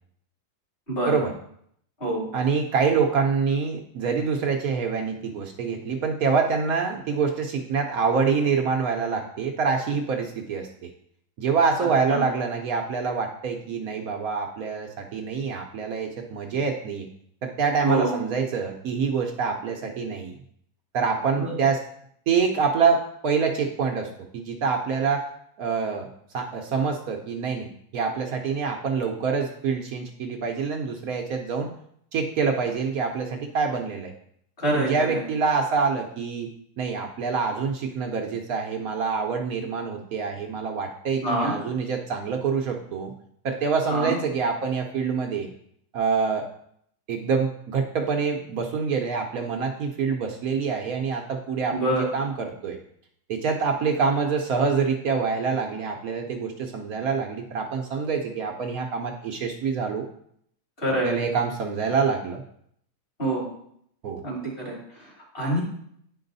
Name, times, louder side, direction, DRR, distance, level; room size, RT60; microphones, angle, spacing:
voice 1, 0.9-1.2 2.0-2.3 12.1-12.2 17.8-18.2 21.3-21.5 34.6-35.2 41.2-41.5 43.9-44.2 51.7-52.1 60.8-61.2 63.2-63.5 64.2-65.6, right 1 dB, 35° left, -4 dB, 3.0 m, -26 dB
voice 2, 2.3-10.7 11.4-17.1 17.4-20.4 20.9-21.8 22.3-25.3 25.6-26.1 26.3-31.7 32.1-34.1 34.7-36.5 36.8-43.1 43.4-45.5 45.9-46.5 47.1-52.8 53.3-60.1 61.0-62.4 64.0-64.2, right 5 dB, 65° right, 3 dB, 1.1 m, -26 dB
9.3 x 4.7 x 3.9 m, 0.69 s
omnidirectional pair, 1.7 m